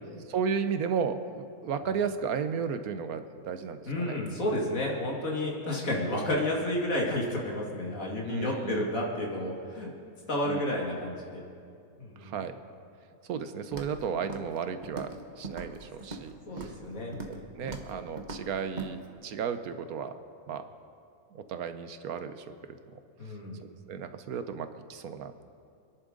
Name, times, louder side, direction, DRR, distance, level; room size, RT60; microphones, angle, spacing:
voice 1, 0.1-4.2 8.2-8.9 10.4-10.6 12.2-12.5 13.3-16.7 17.3-20.1 20.5-20.7 21.3-22.5 23.6-25.4, right 6 dB, 90° right, 9 dB, 1.3 m, -34 dB
voice 2, 3.9-9.9 10.3-11.4 12.0-12.4 16.5-17.6 23.2-23.6, left 1 dB, 70° left, -3 dB, 2.8 m, -31 dB
Walk footsteps, 13.7-14.0 14.3-14.6 14.8-15.2 15.4-16.3 16.6-16.8 17.1-17.4 17.7-17.9 18.2-18.4 18.8-18.9, right 3 dB, 35° right, 1.2 m, -40 dB
27.5 x 11.0 x 3.9 m, 2.4 s
omnidirectional pair, 1.5 m